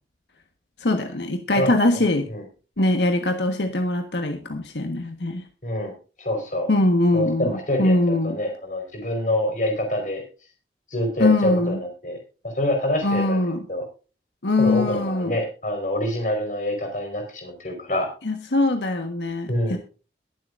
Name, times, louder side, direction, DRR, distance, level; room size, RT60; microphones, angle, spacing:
voice 1, 0.8-2.3 2.8-5.5 6.7-7.5 7.8-8.4 11.2-11.8 13.0-13.7 14.4-15.4 18.2-19.8, left 2 dB, 80° left, 5 dB, 1.4 m, -22 dB
voice 2, 5.6-6.7 7.1-10.2 10.9-12.2 12.4-13.4 13.7-13.8 14.6-18.1 19.5-19.8, left 1 dB, 45° left, 4 dB, 4.6 m, -26 dB
22.5 x 7.8 x 2.6 m, 0.35 s
head